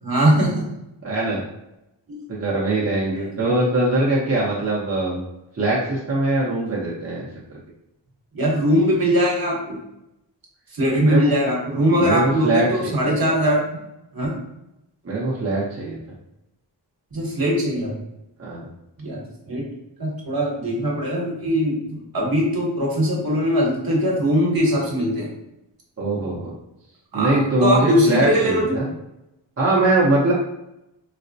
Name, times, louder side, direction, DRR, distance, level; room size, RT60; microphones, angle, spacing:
voice 1, 0.0-0.7 2.1-2.2 3.4-3.5 8.3-9.8 10.7-13.6 14.1-14.3 17.1-17.9 19.0-19.6 20.0-25.3 27.1-28.8, equal, 50° right, -3 dB, 1.1 m, -21 dB
voice 2, 1.0-1.4 2.3-5.2 5.5-7.6 11.1-11.3 12.0-13.0 15.0-16.0 18.4-18.7 26.0-26.5 27.1-28.9 29.6-30.3, right 2 dB, 35° right, -5 dB, 0.7 m, -22 dB
4.0 x 2.1 x 2.6 m, 0.87 s
wide cardioid pair, 70°, 44 cm